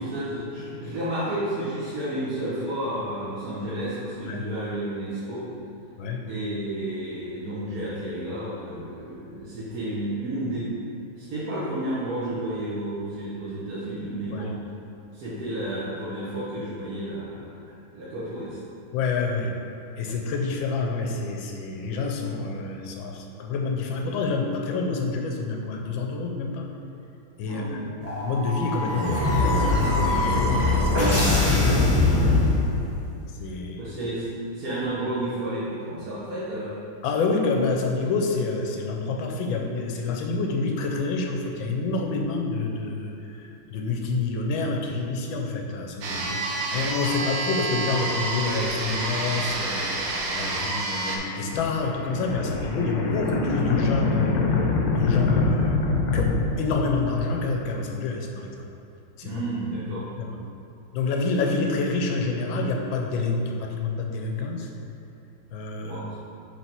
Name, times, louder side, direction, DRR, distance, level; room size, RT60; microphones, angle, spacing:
voice 1, 0.0-5.5 6.3-10.7 11.2-14.6 15.1-17.6 17.9-18.6 27.4-27.8 33.7-34.3 34.5-36.8 59.2-60.0 65.8-66.2, right 1 dB, 55° right, -11 dB, 1.5 m, -31 dB
voice 2, 18.9-19.5 20.0-26.7 27.4-32.4 33.4-33.8 37.0-54.6 54.9-55.8 56.1-58.5 59.2-59.4 59.9-60.4 60.9-64.7 65.5-66.2, left 3 dB, 90° left, 1 dB, 1.5 m, -28 dB
sound 1, 28.0-33.0, left 2 dB, 10° left, 0.9 m, -22 dB
sound 2, 46.0-51.2, right 2 dB, 80° right, 1.5 m, -28 dB
sound 3, 51.5-57.4, left 3 dB, 65° left, 1.1 m, -25 dB
7.3 x 3.5 x 4.5 m, 2.7 s
omnidirectional pair, 2.1 m